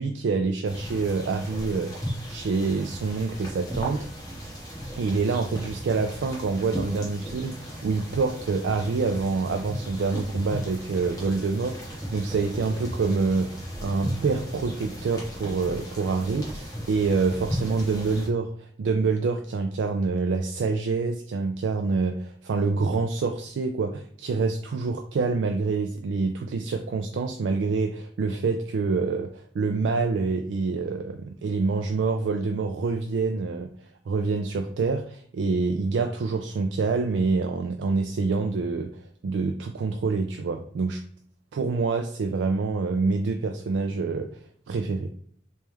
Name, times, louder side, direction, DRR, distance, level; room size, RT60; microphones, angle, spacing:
voice 1, 0.0-4.1 5.0-33.7 34.1-41.0 41.5-44.3 44.7-45.1, right 4 dB, 80° right, 5 dB, 0.3 m, -26 dB
sound 1, 0.6-18.3, equal, 20° left, 1.1 m, -36 dB
3.1 x 3.1 x 3.4 m, 0.63 s
head